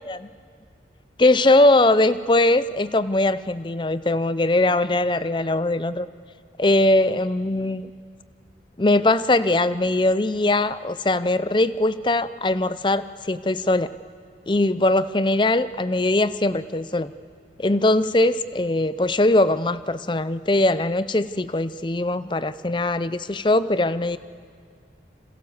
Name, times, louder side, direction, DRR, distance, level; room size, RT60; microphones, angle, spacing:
voice 1, 1.2-6.1 6.6-7.9 8.8-13.9 14.5-17.1 17.6-24.2, left 2 dB, 25° left, 14 dB, 0.6 m, -21 dB
29.0 x 26.5 x 7.2 m, 2.1 s
head